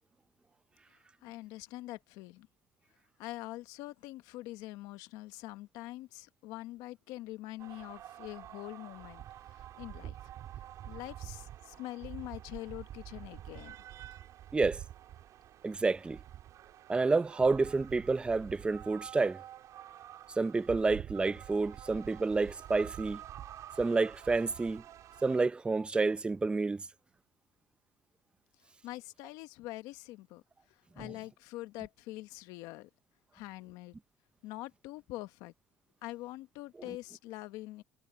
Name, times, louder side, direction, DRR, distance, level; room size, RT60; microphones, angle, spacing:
voice 1, 1.2-2.5 3.2-9.2 9.5-10.2 10.9-13.7 28.8-30.4 31.0-32.9 33.3-34.0 34.4-35.5 36.0-37.8, left 17 dB, 85° left, 1.2 m, -44 dB
sound 1, 7.6-25.4, right 12 dB, 65° right, 3.5 m, -48 dB
voice 2, 15.6-16.2 16.9-19.4 20.4-23.2 23.8-24.8 25.2-26.9 31.0-31.1, right 3 dB, 15° right, 0.5 m, -29 dB
cardioid pair, 105°, 6 cm